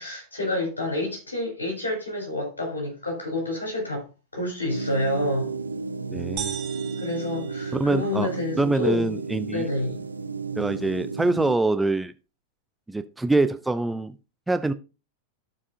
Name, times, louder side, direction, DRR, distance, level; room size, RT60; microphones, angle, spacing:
voice 1, 0.0-4.1 4.3-5.5 7.0-9.1 9.5-10.0, left 2 dB, 75° left, 3.7 m, -29 dB
sound 1, 4.7-11.6, right 5 dB, 80° right, 0.4 m, -33 dB
voice 2, 6.1-6.6 7.7-9.7 10.6-12.1 12.9-14.1 14.5-14.7, right 2 dB, 5° right, 0.4 m, -24 dB
sound 2, 6.4-8.3, right 9 dB, 40° right, 1.0 m, -38 dB
13.5 x 4.8 x 2.6 m
figure-of-eight pair, 90°, 0 cm